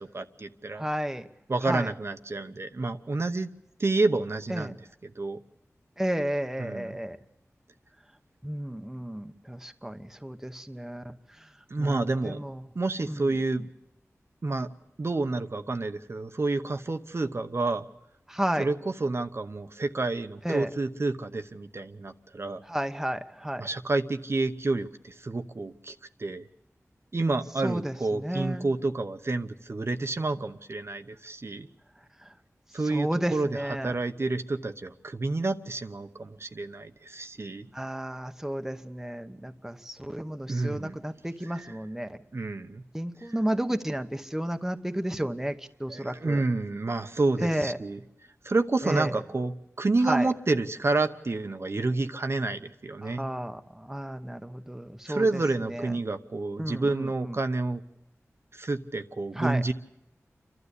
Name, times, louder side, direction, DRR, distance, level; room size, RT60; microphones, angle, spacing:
voice 1, 0.1-0.8 1.5-3.5 3.8-4.8 5.0-5.4 6.6-7.0 11.7-12.4 12.7-13.6 14.4-14.7 15.0-17.8 18.6-18.7 19.0-22.6 23.6-25.9 26.2-26.4 27.1-31.7 32.7-37.7 40.5-41.0 41.5-41.7 42.3-42.8 43.2-43.3 45.9-48.0 48.4-49.5 49.8-53.2 55.1-57.8 58.5-59.7, right 3 dB, 55° right, 7 dB, 0.9 m, -29 dB
voice 2, 0.7-1.3 1.6-1.9 4.5-4.7 6.0-7.2 8.4-11.5 11.8-12.7 13.1-13.6 18.3-18.7 20.4-20.7 22.6-23.7 27.6-28.7 32.2-32.3 32.8-33.9 37.7-42.2 42.9-46.4 47.4-47.8 48.8-49.2 50.0-50.3 53.0-55.9 56.6-57.4 59.3-59.6, right 1 dB, 5° right, 7 dB, 0.9 m, -32 dB
28.5 x 12.5 x 8.2 m, 0.88 s
wide cardioid pair, 80°, 5 cm